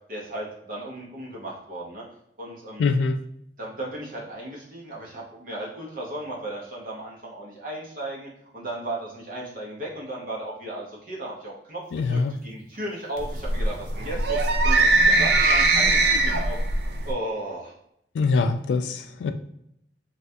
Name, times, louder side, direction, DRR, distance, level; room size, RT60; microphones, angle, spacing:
voice 1, 0.1-2.0 2.4-2.9 3.6-14.4 14.6-16.6 17.0-17.7, right 1 dB, 50° right, -3 dB, 0.8 m, -35 dB
voice 2, 2.8-3.2 11.9-12.3 18.1-19.3, left 4 dB, 85° left, 8 dB, 0.3 m, -23 dB
sound 1, 13.2-17.1, right 2 dB, 65° right, 0.4 m, -21 dB
3.3 x 2.4 x 2.6 m, 0.74 s
head